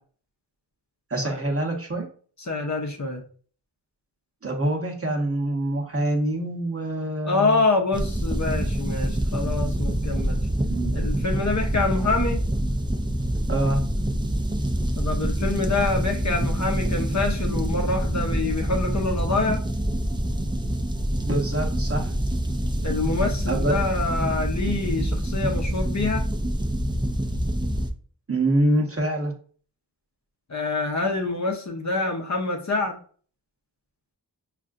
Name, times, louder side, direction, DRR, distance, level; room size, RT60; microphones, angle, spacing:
voice 1, 1.1-2.1 4.4-7.6 10.7-10.9 13.5-13.8 21.3-22.1 23.5-23.8 28.3-29.3, right 1 dB, 35° right, 1 dB, 0.8 m, -25 dB
voice 2, 2.5-3.2 7.2-10.5 10.9-12.4 14.9-19.6 22.8-26.2 30.5-33.0, left 3 dB, 45° left, 2 dB, 0.8 m, -26 dB
sound 1, 7.9-27.9, right 1 dB, 10° right, 0.4 m, -26 dB
5.4 x 2.4 x 2.5 m, 0.44 s
wide cardioid pair, 80°, 41 cm